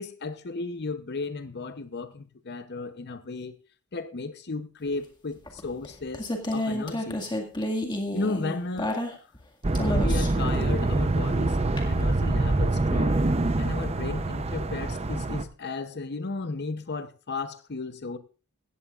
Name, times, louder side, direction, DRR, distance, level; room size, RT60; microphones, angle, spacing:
voice 1, 0.0-3.6 3.9-7.2 8.1-8.9 9.8-13.3 13.6-18.2, left 3 dB, 50° left, 0.7 m, -34 dB
sound 1, 5.5-9.4 9.7-10.5 11.8-11.9, left 1 dB, 20° left, 1.9 m, -30 dB
sound 2, 9.6-15.4, right 2 dB, 30° right, 0.6 m, -25 dB
17.0 x 14.5 x 2.4 m
head